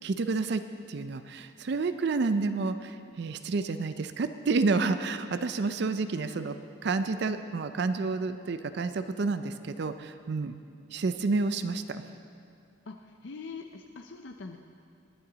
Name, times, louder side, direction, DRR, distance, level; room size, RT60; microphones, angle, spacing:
voice 1, 0.0-0.6 0.9-6.6 6.8-10.5 10.9-12.0, right 4 dB, 55° right, 10 dB, 0.4 m, -29 dB
voice 2, 12.9-14.6, left 4 dB, 60° left, 5 dB, 0.5 m, -43 dB
19.0 x 9.7 x 3.9 m, 2.4 s
head